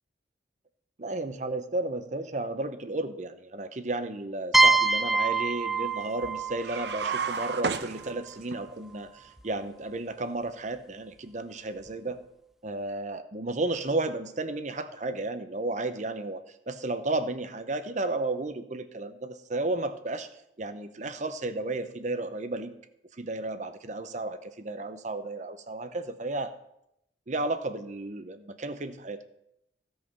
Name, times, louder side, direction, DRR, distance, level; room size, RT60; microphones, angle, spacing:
voice 1, 1.0-12.2 12.6-20.3 20.6-22.7 23.2-26.5 27.3-29.2, right 2 dB, 45° right, 10 dB, 0.8 m, -33 dB
sound 1, 4.5-8.2, right 3 dB, ahead, 0.4 m, -25 dB
sound 2, 6.6-8.6, right 5 dB, 70° right, 0.7 m, -32 dB
15.5 x 5.5 x 5.5 m, 0.80 s
head